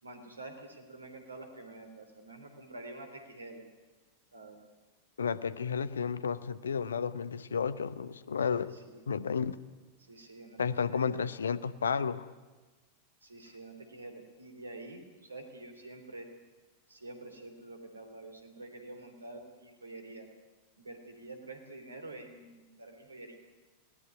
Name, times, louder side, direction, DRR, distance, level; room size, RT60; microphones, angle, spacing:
voice 1, 0.0-3.7 4.3-4.6 8.5-9.0 10.1-10.6 10.9-11.2 13.2-16.3 16.9-20.3 20.8-23.4, right 2 dB, 75° right, 6 dB, 3.4 m, -47 dB
voice 2, 5.2-8.7 9.1-9.6 10.6-12.3, left 6 dB, 70° left, 17 dB, 0.9 m, -32 dB
21.0 x 18.5 x 9.5 m, 1.3 s
figure-of-eight pair, 90°, 0 cm